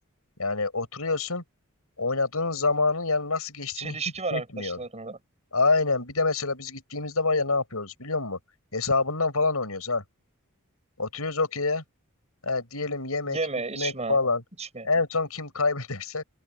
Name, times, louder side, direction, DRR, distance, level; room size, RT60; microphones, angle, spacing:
voice 1, 0.4-1.4 2.0-4.0 4.3-4.8 5.5-8.4 8.7-10.0 11.0-11.8 12.4-13.4 13.7-14.4 14.8-16.2, left 3 dB, 80° left, 6.0 m, -26 dB
voice 2, 3.8-5.2 13.3-14.2 14.6-14.9, right 4 dB, 30° right, 7.4 m, -32 dB
open air
head